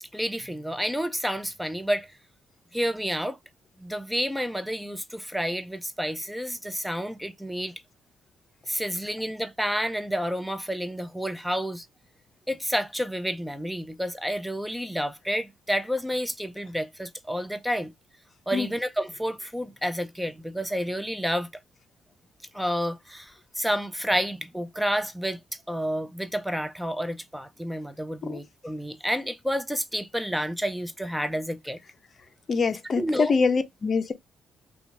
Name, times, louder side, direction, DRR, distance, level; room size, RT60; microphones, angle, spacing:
voice 1, 0.0-2.1 2.7-3.4 3.8-7.7 8.7-11.8 12.5-17.9 18.5-21.5 22.5-25.4 25.7-31.8 33.0-33.3, equal, ahead, 0.6 m, -30 dB
voice 2, 32.5-34.1, left 5 dB, 40° left, 0.6 m, -24 dB
2.8 x 2.3 x 4.0 m
cardioid pair, 90°, 0 cm